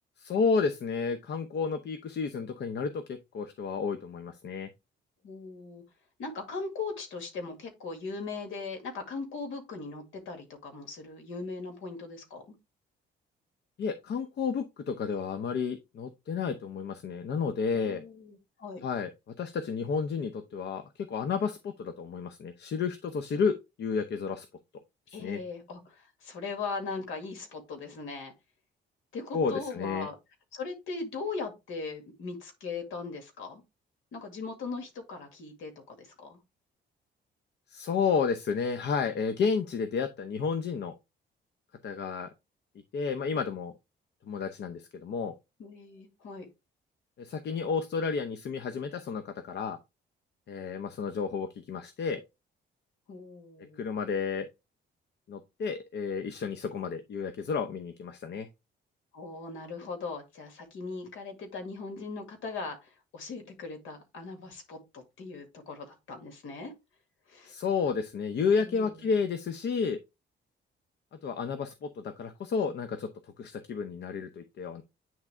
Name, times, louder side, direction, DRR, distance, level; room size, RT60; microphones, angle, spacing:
voice 1, 0.2-4.7 13.8-18.0 18.8-24.5 25.1-25.4 29.3-30.1 37.7-40.9 41.8-42.3 42.9-43.7 44.3-45.3 47.2-49.8 50.5-52.2 53.8-54.5 55.3-58.5 67.4-70.0 71.2-73.1 73.4-74.8, left 5 dB, 60° left, 0.8 m, -31 dB
voice 2, 5.2-5.8 6.2-12.4 17.7-18.8 25.1-28.3 29.1-30.1 30.5-33.6 34.1-36.4 45.6-46.5 53.1-53.8 59.1-66.7 67.3-67.5 68.6-69.2, left 4 dB, 80° left, 2.1 m, -39 dB
8.8 x 3.6 x 3.3 m
cardioid pair, 90°, 20 cm